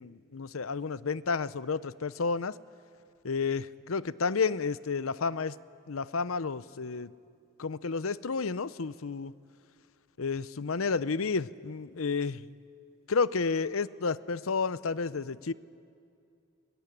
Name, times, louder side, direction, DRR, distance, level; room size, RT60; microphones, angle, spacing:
voice 1, 0.0-2.6 3.2-5.6 5.9-7.1 7.6-9.3 10.2-12.5 13.1-15.5, left 4 dB, 90° left, 16 dB, 0.7 m, -31 dB
24.5 x 20.0 x 9.9 m, 2.4 s
head